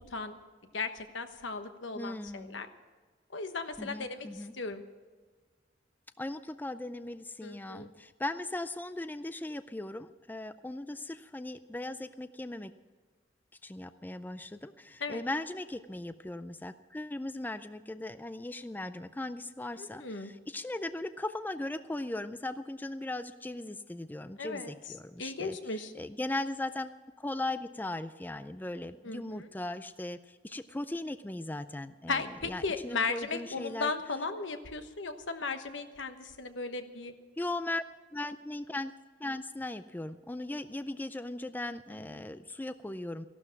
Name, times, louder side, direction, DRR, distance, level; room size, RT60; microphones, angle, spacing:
voice 1, 0.7-2.7 3.3-4.8 7.4-7.9 15.0-15.2 19.8-20.3 24.4-24.9 25.2-25.9 29.0-29.5 32.1-37.1 41.9-42.2, left 4 dB, 80° left, 8 dB, 1.2 m, -36 dB
voice 2, 1.9-2.6 3.8-4.5 6.2-12.7 13.6-25.6 25.9-33.9 37.4-37.8 38.1-38.9 39.2-43.3, left 2 dB, 10° left, 12 dB, 0.4 m, -38 dB
15.0 x 12.0 x 5.9 m, 1.4 s
head